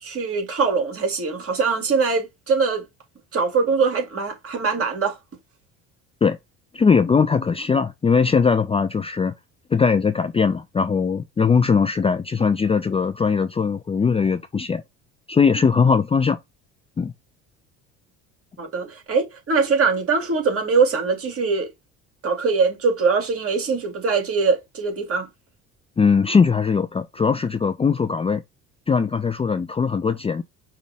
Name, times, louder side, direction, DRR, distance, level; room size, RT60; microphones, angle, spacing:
voice 1, 0.0-2.8 3.3-5.2 18.6-21.7 22.2-25.3, right 4 dB, 40° right, 2.4 m, -22 dB
voice 2, 6.7-9.3 9.7-14.8 15.3-16.4 17.0-17.1 26.0-28.4 28.9-30.4, left 5 dB, 15° left, 0.5 m, -20 dB
5.5 x 2.4 x 3.5 m
hypercardioid pair, 70°, 35 cm